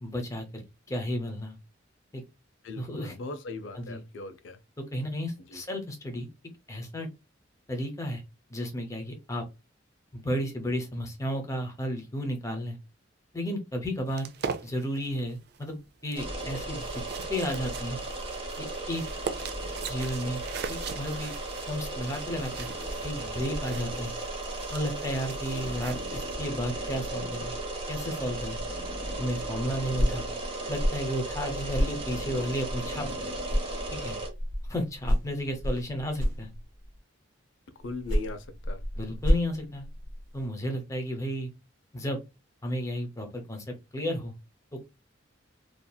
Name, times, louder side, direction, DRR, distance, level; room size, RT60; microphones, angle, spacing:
voice 1, 0.0-1.6 2.1-2.2 2.8-3.2 3.7-4.0 4.8-6.3 6.7-7.1 7.7-8.2 8.5-9.4 10.1-12.8 13.3-14.3 14.6-15.8 16.0-16.9 17.3-18.0 18.6-19.0 19.9-20.4 20.7-21.3 21.7-22.7 23.0-24.1 24.7-27.5 27.9-28.6 29.2-30.3 30.7-33.3 33.9-34.2 34.7-36.5 39.0-39.8 40.3-41.5 41.9-42.2 42.6-44.3 44.7-44.8, equal, 15° left, 0.8 m, -33 dB
voice 2, 2.6-4.6 5.5-5.6 37.8-38.8, left 2 dB, 75° left, 0.5 m, -39 dB
sound 1, 14.1-26.3, right 6 dB, 55° right, 0.4 m, -41 dB
sound 2, 16.2-34.3, right 2 dB, 30° right, 0.8 m, -35 dB
sound 3, 29.9-33.2 33.4-37.0 37.8-40.5, equal, 85° right, 1.2 m, -31 dB
2.8 x 2.5 x 2.2 m
head